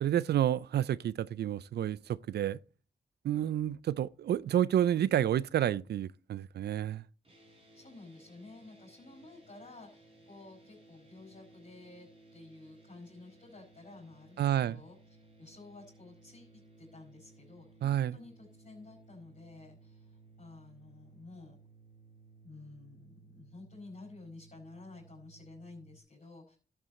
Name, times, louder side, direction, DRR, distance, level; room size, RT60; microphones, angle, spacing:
voice 1, 0.0-2.6 3.2-7.0 14.4-14.8 17.8-18.2, right 11 dB, 75° right, 0.4 m, -30 dB
sound 1, 7.2-26.0, right 3 dB, 35° right, 4.1 m, -59 dB
voice 2, 7.7-15.0 15.4-21.6 22.4-26.6, left 2 dB, 45° left, 4.9 m, -52 dB
12.0 x 7.9 x 4.2 m
cardioid pair, 60°, 17 cm